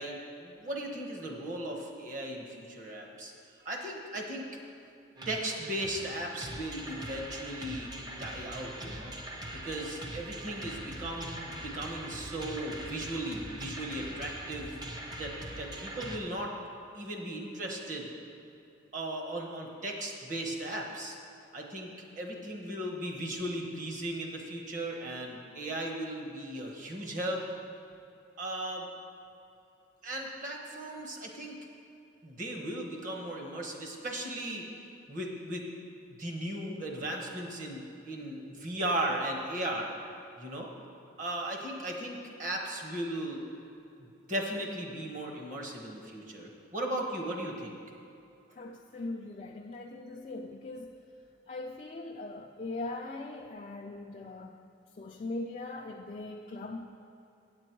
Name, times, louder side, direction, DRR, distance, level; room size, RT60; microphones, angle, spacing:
voice 1, 0.0-4.4 5.2-7.9 8.2-9.1 9.6-14.8 15.1-16.5 16.9-18.1 18.9-21.2 21.5-27.4 28.4-28.9 30.0-31.6 32.2-34.6 35.1-35.7 36.0-39.9 40.4-40.7 41.2-43.4 44.0-47.8, right 1 dB, 40° right, 1 dB, 1.1 m, -37 dB
sound 1, 5.2-16.2, right 1 dB, 20° right, 0.6 m, -42 dB
voice 2, 48.6-51.0 51.5-54.6 54.9-56.9, left 2 dB, 35° left, 0 dB, 0.4 m, -40 dB
8.6 x 8.0 x 4.5 m, 2.8 s
head